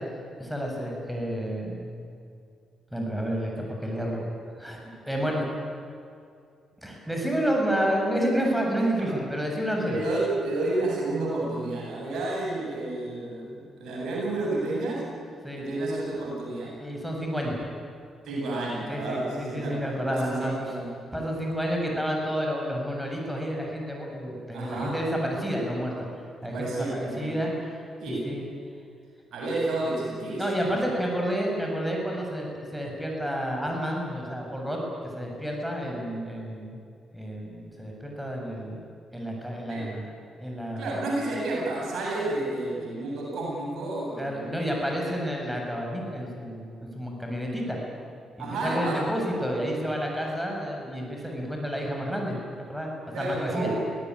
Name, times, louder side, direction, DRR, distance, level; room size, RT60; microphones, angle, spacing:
voice 1, 0.4-1.9 2.9-4.3 4.6-4.8 5.1-5.5 6.8-10.0 15.4-15.6 16.8-17.6 18.9-20.5 21.1-25.9 26.4-26.7 27.0-28.4 30.4-34.8 35.1-36.8 37.1-38.8 39.1-40.1 40.4-40.9 44.2-46.7 46.9-47.8 48.4-52.4 52.7-52.9 53.2-53.7, equal, 5° right, -1 dB, 7.6 m, -30 dB
voice 2, 9.9-15.1 15.6-16.8 18.2-20.9 24.5-25.0 26.5-27.4 28.0-28.3 29.3-30.8 39.7-39.9 40.8-44.5 48.4-49.1 53.1-53.8, right 2 dB, 60° right, -3 dB, 7.9 m, -30 dB
23.5 x 18.0 x 9.8 m, 2.4 s
figure-of-eight pair, 40°, 0 cm